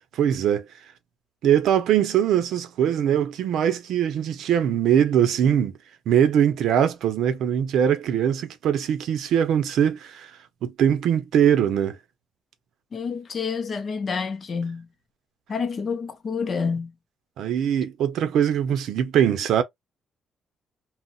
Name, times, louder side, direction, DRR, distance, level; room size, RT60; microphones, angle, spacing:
voice 1, 0.1-0.7 1.4-5.7 6.1-10.3 10.6-12.0 17.4-19.6, right 9 dB, 70° right, 0.6 m, -21 dB
voice 2, 12.9-14.9 15.5-16.9, left 5 dB, 35° left, 0.4 m, -28 dB
3.9 x 2.0 x 2.3 m
cardioid pair, 175°, 0 cm